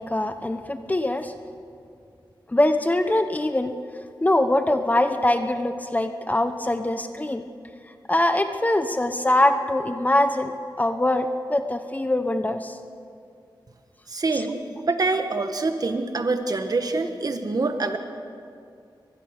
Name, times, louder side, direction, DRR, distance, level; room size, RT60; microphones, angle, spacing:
voice 1, 0.0-1.3 2.5-3.7 4.2-7.5 8.1-10.5 10.8-12.8 14.3-14.5, left 1 dB, 20° left, 8 dB, 1.0 m, -23 dB
voice 2, 14.1-18.0, right 3 dB, 50° right, 6 dB, 1.5 m, -25 dB
24.0 x 20.0 x 6.7 m, 2.4 s
wide cardioid pair, 105°, 8 cm